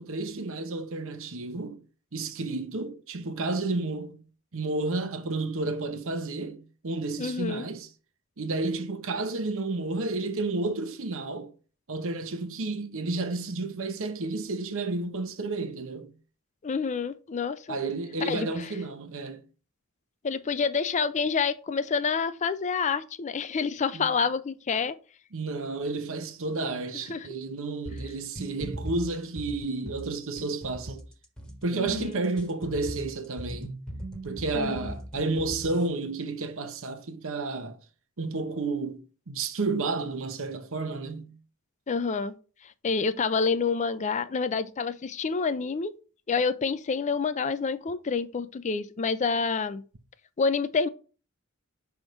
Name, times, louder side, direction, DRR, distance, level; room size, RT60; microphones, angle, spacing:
voice 1, 0.0-1.8 2.1-4.2 4.5-7.9 8.4-11.5 11.9-16.1 17.7-19.4 23.9-24.2 25.3-31.0 31.6-33.8 34.2-37.8 38.2-41.3, right 3 dB, 65° right, 0.9 m, -31 dB
voice 2, 7.2-7.7 16.6-17.8 18.2-18.7 20.2-24.9 27.1-27.2 31.7-32.2 34.5-34.9 41.9-42.3 42.8-45.9 46.3-49.8 50.4-50.9, left 5 dB, 35° left, 0.4 m, -28 dB
sound 1, 27.9-35.9, right 1 dB, 5° left, 1.3 m, -39 dB
6.1 x 3.6 x 5.2 m
head